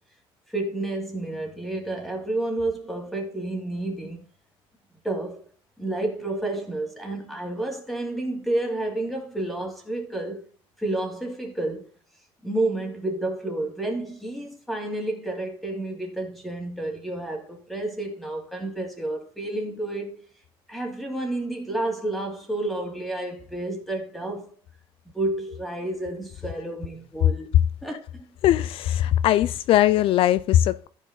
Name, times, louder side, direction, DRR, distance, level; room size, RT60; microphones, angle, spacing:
voice 1, 0.5-4.2 5.0-5.5 5.8-10.4 10.8-11.9 12.4-20.2 20.7-24.6 25.0-27.5 27.8-28.3, right 2 dB, ahead, 2.8 m, -30 dB
voice 2, 28.4-30.9, left 12 dB, 60° left, 0.4 m, -20 dB
14.5 x 5.0 x 4.0 m
cardioid pair, 130°, 10 cm